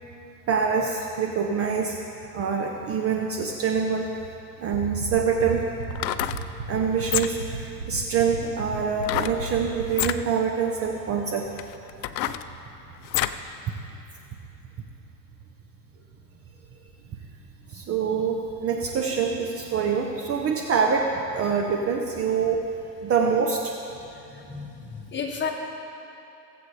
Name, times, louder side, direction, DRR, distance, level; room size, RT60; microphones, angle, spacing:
voice 1, 0.5-2.0 2.3-4.1 4.6-5.7 6.7-11.5 17.7-22.6 23.0-23.7, right 6 dB, 30° right, 2 dB, 0.8 m, -25 dB
sound 1, 4.7-9.8, right 4 dB, 65° right, 1.8 m, -33 dB
sound 2, 5.8-6.5 7.0-7.6 9.0-9.4 9.9-10.2 10.9-11.0 11.6-13.5 13.9-14.0, left 13 dB, 85° left, 0.6 m, -28 dB
voice 2, 23.9-25.5, left 6 dB, 20° left, -1 dB, 1.7 m, -33 dB
18.0 x 8.0 x 3.3 m, 2.9 s
hypercardioid pair, 100°, 49 cm